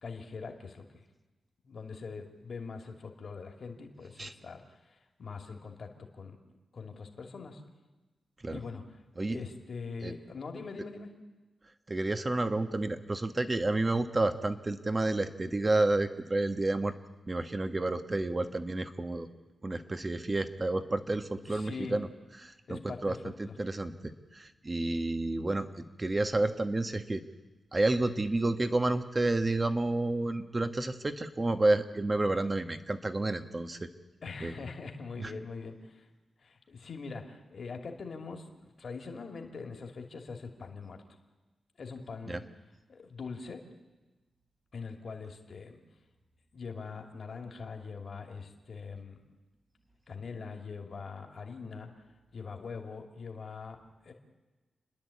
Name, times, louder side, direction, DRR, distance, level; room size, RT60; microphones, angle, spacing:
voice 1, 0.0-1.0 1.6-5.9 6.1-6.4 6.7-7.6 8.5-8.8 9.3-11.1 21.4-22.0 22.7-23.6 34.2-36.1 36.4-41.0 41.8-42.4 42.9-43.6 44.7-45.8 46.5-49.2 50.1-51.9 52.3-53.8 54.0-54.1, left 4 dB, 60° left, 3 dB, 2.6 m, -42 dB
voice 2, 11.9-16.9 17.3-19.3 19.6-22.1 22.4-27.2 27.7-33.9 34.4-34.6 35.2-35.3 42.3-42.4, right 2 dB, 30° right, 8 dB, 1.5 m, -30 dB
29.5 x 10.5 x 8.5 m, 1.2 s
cardioid pair, 65°, 0 cm